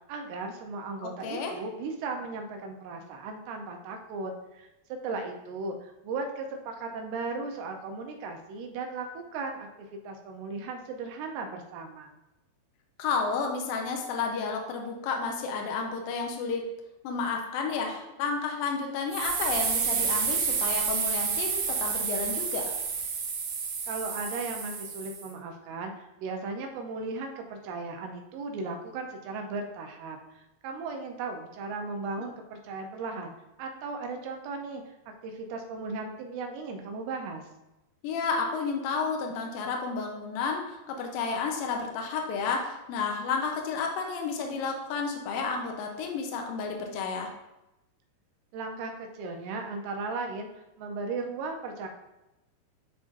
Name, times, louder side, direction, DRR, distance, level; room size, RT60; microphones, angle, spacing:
voice 1, 0.1-12.1 23.9-33.3 33.6-34.8 35.2-37.4 48.5-50.5 50.8-51.9, right 3 dB, 90° right, 3 dB, 2.9 m, -36 dB
voice 2, 1.0-1.5 13.0-16.6 17.0-22.7 32.2-32.3 38.0-47.3, left 5 dB, 75° left, 2 dB, 2.4 m, -31 dB
sound 1, 19.1-25.3, right 6 dB, 75° right, 2.3 m, -30 dB
10.5 x 3.7 x 2.6 m, 0.96 s
omnidirectional pair, 4.5 m